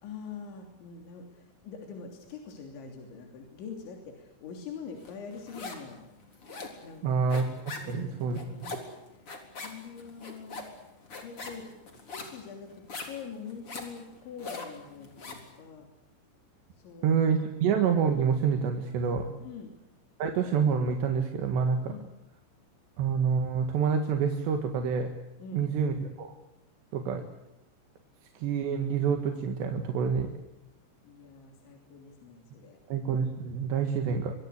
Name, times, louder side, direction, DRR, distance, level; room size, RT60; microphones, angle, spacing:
voice 1, 0.0-6.1 6.8-7.3 7.7-9.2 9.6-10.7 11.2-15.9 16.8-17.3 19.4-19.7 21.8-22.1 25.4-25.7 31.0-32.8 33.9-34.3, left 6 dB, 80° left, 3 dB, 5.4 m, -44 dB
sound 1, 5.0-5.9 6.2-15.5, left 3 dB, 30° left, 4.2 m, -42 dB
voice 2, 7.0-7.5 7.9-8.4 17.0-19.3 20.2-21.9 23.0-25.1 25.5-26.3 26.9-27.2 28.4-30.3 32.9-34.3, right 6 dB, 70° right, 5 dB, 3.9 m, -27 dB
25.5 x 24.0 x 8.3 m, 0.88 s
omnidirectional pair, 5.3 m